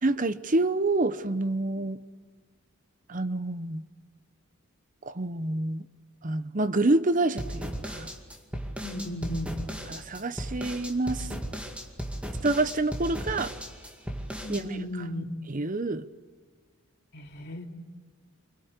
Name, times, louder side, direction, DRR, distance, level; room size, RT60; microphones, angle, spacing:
voice 1, 0.0-2.0 3.1-3.8 5.0-5.8 6.2-8.1 9.9-11.3 12.4-13.5 14.5-14.8 15.5-16.1, right 2 dB, 35° right, 13 dB, 0.9 m, -27 dB
sound 1, 7.4-14.6, equal, 5° right, 2.2 m, -36 dB
voice 2, 8.8-9.6 14.4-15.2 17.1-17.7, left 1 dB, 50° left, 2 dB, 3.0 m, -35 dB
28.0 x 24.0 x 8.3 m, 1.5 s
head